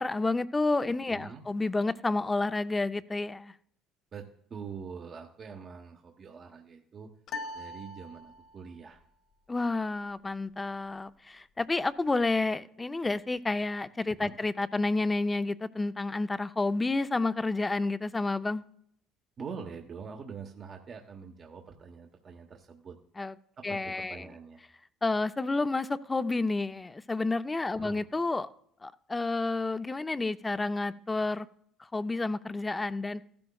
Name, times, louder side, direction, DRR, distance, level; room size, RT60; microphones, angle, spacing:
voice 1, 0.0-3.5 9.5-18.6 23.2-23.3 23.6-24.3 25.0-28.5 28.8-31.5 31.9-33.2, left 3 dB, 20° left, 0.5 m, -30 dB
voice 2, 1.1-1.4 4.1-7.1 7.5-9.0 14.2-14.4 19.4-23.0 23.6-24.6 27.8-28.0, right 6 dB, 40° right, 1.1 m, -44 dB
sound 1, 7.3-8.8, left 2 dB, 55° left, 0.7 m, -41 dB
15.0 x 12.0 x 2.3 m
supercardioid pair, 85°, 0 cm